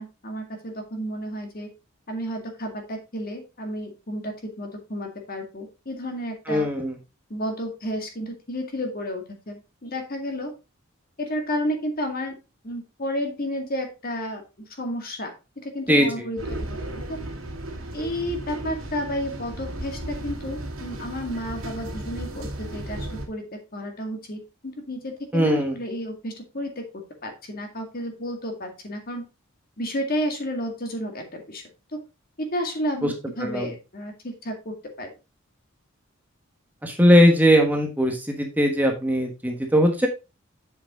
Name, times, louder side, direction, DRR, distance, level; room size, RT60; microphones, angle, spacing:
voice 1, 0.0-1.7 2.1-6.7 7.3-10.5 11.2-12.4 12.6-14.4 14.8-15.3 15.6-16.8 17.1-17.2 17.9-26.8 27.2-29.3 29.8-31.6 32.5-35.1, equal, 45° left, 4 dB, 2.0 m, -31 dB
voice 2, 6.5-7.0 15.9-16.3 25.3-25.7 33.0-33.1 33.4-33.7 36.8-40.1, equal, 10° right, 2 dB, 1.2 m, -20 dB
sound 1, 16.4-23.3, right 1 dB, 80° right, 2.3 m, -35 dB
7.8 x 5.8 x 3.9 m, 0.28 s
head